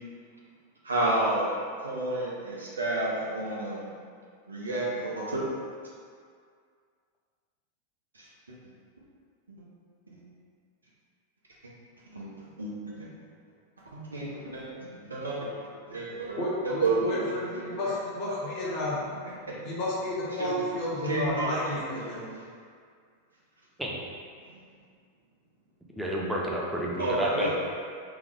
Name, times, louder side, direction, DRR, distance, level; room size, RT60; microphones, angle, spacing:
voice 1, 0.8-1.5 1.8-3.9 4.5-5.4 8.2-8.3 10.1-10.2 12.1-12.3 12.6-13.1 13.9-15.5 15.9-16.4 16.6-17.0 17.5-17.6 19.1-19.6 20.4-20.5 20.9-22.2 24.5-24.6 27.0-27.5, right 2 dB, 75° right, -5 dB, 0.8 m, -31 dB
voice 2, 16.4-19.0 19.6-22.3, left 1 dB, 45° left, -7 dB, 0.9 m, -32 dB
voice 3, 26.0-27.5, right 1 dB, 5° right, -4 dB, 0.7 m, -30 dB
3.5 x 3.5 x 3.4 m, 2.1 s
figure-of-eight pair, 90°, 0 cm